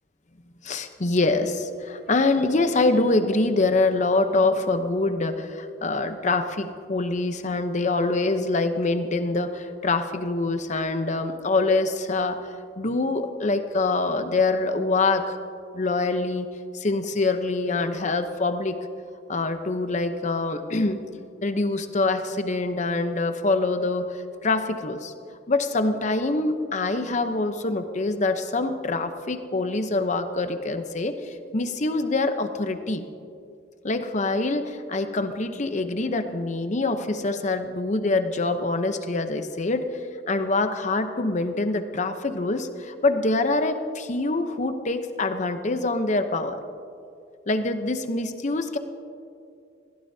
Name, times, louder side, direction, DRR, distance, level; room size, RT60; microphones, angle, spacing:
voice 1, 0.6-15.4 15.7-16.5 16.7-18.8 19.3-21.0 21.4-25.1 25.5-33.1 33.8-39.9 40.3-46.6 47.5-48.8, left 3 dB, 40° left, 8 dB, 0.8 m, -25 dB
21.0 x 15.5 x 2.8 m, 2.4 s
head